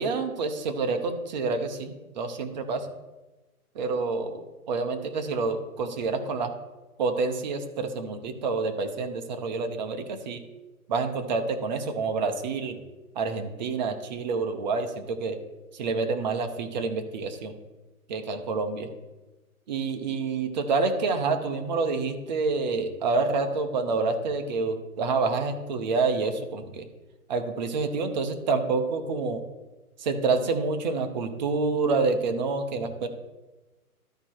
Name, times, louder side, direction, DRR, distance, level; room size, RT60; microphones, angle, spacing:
voice 1, 0.0-2.9 3.7-6.5 7.0-10.4 10.9-12.8 13.2-15.4 15.7-17.6 18.1-18.9 19.7-26.8 27.3-29.4 30.0-33.1, right 4 dB, 30° right, 7 dB, 0.8 m, -28 dB
13.0 x 4.3 x 4.5 m, 1.1 s
hypercardioid pair, 155°, 45 cm